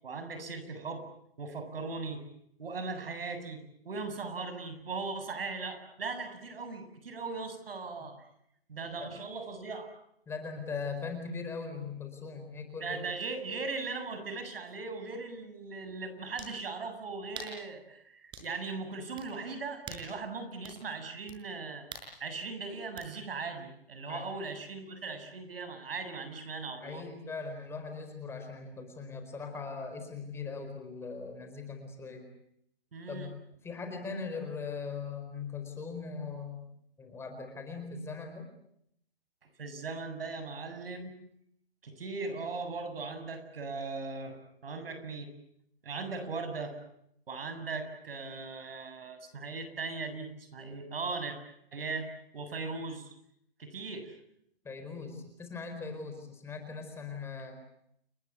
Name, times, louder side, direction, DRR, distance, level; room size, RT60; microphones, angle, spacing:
voice 1, 0.0-1.1 1.4-2.2 2.6-8.2 8.7-9.9 12.8-21.9 22.2-27.0 32.9-33.3 39.6-41.1 41.8-44.4 44.6-45.3 45.8-46.8 47.3-51.4 51.7-52.1 52.3-53.1 53.6-54.2, right 4 dB, 70° right, 8 dB, 7.7 m, -38 dB
voice 2, 10.3-13.0 24.1-24.3 26.8-32.3 33.1-33.3 33.6-36.7 37.0-38.5 54.6-57.6, left 4 dB, 10° left, 5 dB, 4.6 m, -40 dB
sound 1, 14.7-14.8 16.4-16.6 17.3-17.6 18.3-18.5 19.2-19.3 19.8-20.1 20.6-20.8 21.3-21.4 21.9-22.1 23.0-23.1, right 4 dB, 15° right, 6.0 m, -44 dB
30.0 x 22.0 x 8.3 m, 0.73 s
hypercardioid pair, 155°, 30 cm